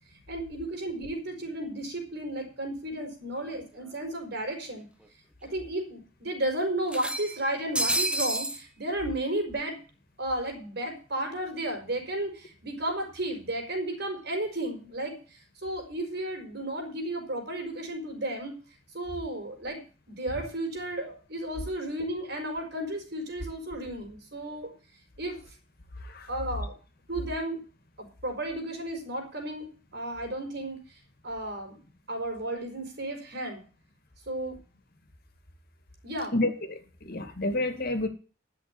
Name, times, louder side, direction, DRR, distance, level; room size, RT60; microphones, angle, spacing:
voice 1, 0.3-4.9 5.4-9.8 10.2-18.5 18.9-19.8 20.1-24.7 25.2-25.4 26.3-26.7 27.1-27.6 28.0-30.8 31.2-31.8 32.1-33.6 34.3-34.6 36.0-36.4, right 1 dB, 60° right, 4.9 m, -33 dB
sound 1, 3.5-3.6 3.9-4.0 5.0-5.1 5.5-5.6 6.9-8.6, right 1 dB, 5° right, 1.2 m, -29 dB
voice 2, 36.3-38.1, left 2 dB, 55° left, 2.3 m, -29 dB
11.5 x 6.7 x 8.8 m
head